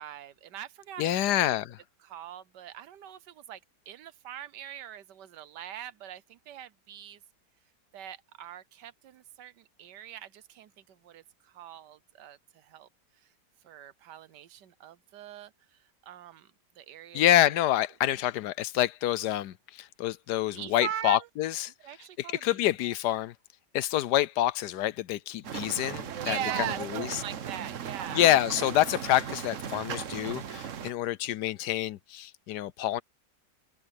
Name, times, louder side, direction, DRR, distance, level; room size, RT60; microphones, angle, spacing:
voice 1, 0.0-1.4 2.0-3.6 3.9-7.2 7.9-12.9 13.6-15.5 16.0-16.5 16.8-17.2 20.5-21.3 21.8-22.3 26.2-28.2, right 11 dB, 80° right, 1.5 m, -41 dB
voice 2, 1.0-1.8 17.1-21.7 22.2-23.3 23.7-26.4 26.8-27.2 28.1-33.0, left 13 dB, 75° left, 1.2 m, -27 dB
sound 1, 25.4-30.9, right 8 dB, 55° right, 1.2 m, -37 dB
omnidirectional pair, 1.8 m